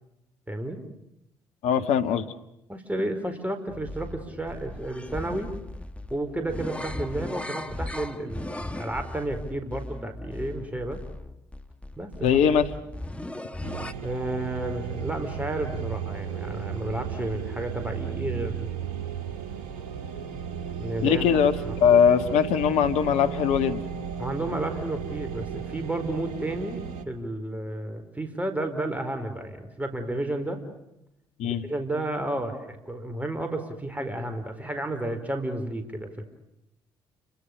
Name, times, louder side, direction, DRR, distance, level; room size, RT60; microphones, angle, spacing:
voice 1, 0.5-0.8 2.7-5.5 6.1-11.0 12.0-12.1 14.0-18.7 20.8-21.3 21.6-22.0 24.2-30.6 31.4-36.3, right 1 dB, 10° right, 6 dB, 4.8 m, -32 dB
voice 2, 1.6-2.3 12.2-12.6 21.0-21.5 21.8-23.8 31.4-31.6, left 7 dB, 70° left, 9 dB, 1.6 m, -21 dB
sound 1, 3.7-13.9, left 1 dB, 10° left, 2.2 m, -37 dB
sound 2, 13.6-27.0, right 7 dB, 80° right, 2.1 m, -34 dB
30.0 x 24.0 x 6.9 m, 0.83 s
hypercardioid pair, 50°, 12 cm